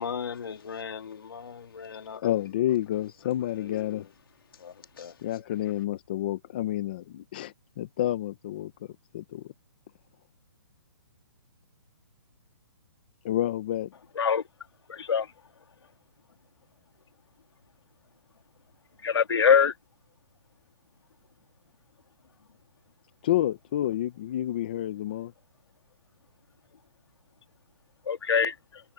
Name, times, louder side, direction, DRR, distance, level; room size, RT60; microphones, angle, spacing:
voice 1, 0.0-2.4 2.9-3.1 3.5-4.1 4.5-5.4, left 6 dB, 60° left, 3.0 m, -39 dB
voice 2, 2.2-4.1 5.2-8.7 9.1-9.4 13.2-13.9 23.2-25.3, left 13 dB, 20° left, 0.6 m, -29 dB
voice 3, 14.9-15.3 19.0-19.7 28.1-28.8, left 7 dB, 80° left, 2.7 m, -23 dB
hypercardioid pair, 175°, 13 cm